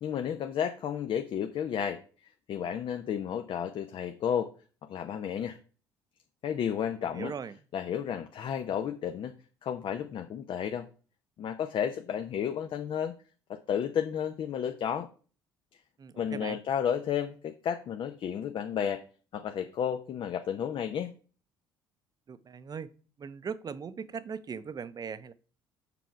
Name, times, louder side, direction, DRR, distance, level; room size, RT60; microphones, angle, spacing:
voice 1, 0.0-2.0 2.5-4.5 4.9-5.6 6.4-7.3 7.7-9.3 9.6-10.9 11.4-13.1 13.5-15.1 16.2-19.0 19.3-21.1, left 8 dB, 55° left, 0.8 m, -32 dB
voice 2, 7.0-7.6 16.0-16.6 22.3-22.9 23.2-25.3, right 6 dB, 35° right, 0.7 m, -39 dB
7.0 x 6.2 x 4.7 m
hypercardioid pair, 55°, 11 cm